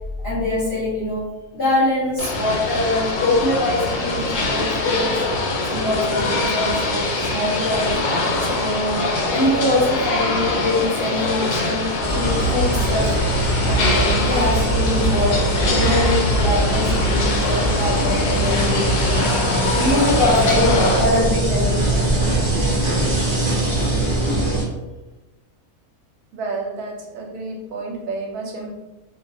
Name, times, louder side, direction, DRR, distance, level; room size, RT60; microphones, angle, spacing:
voice 1, 0.2-1.3 1.5-5.2 5.7-8.0 8.5-13.2 13.6-18.9 19.7-22.3, left 1 dB, 50° left, -10 dB, 0.8 m, -23 dB
sound 1, 2.2-21.0, left 2 dB, 80° left, 1.1 m, -24 dB
sound 2, 12.0-24.6, right 1 dB, 30° right, 0.5 m, -21 dB
voice 2, 26.3-28.8, right 3 dB, 90° right, 0 dB, 1.1 m, -30 dB
2.4 x 2.2 x 2.5 m, 1.1 s
omnidirectional pair, 1.6 m